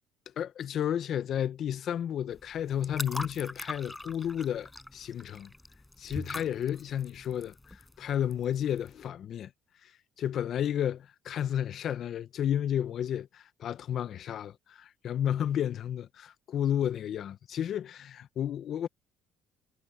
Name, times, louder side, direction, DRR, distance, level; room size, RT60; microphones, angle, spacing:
voice 1, 0.4-5.5 6.0-9.5 10.2-18.9, left 10 dB, 55° left, 0.8 m, -32 dB
sound 1, 2.3-9.0, left 2 dB, 10° left, 4.5 m, -42 dB
cardioid pair, 105°, 0 cm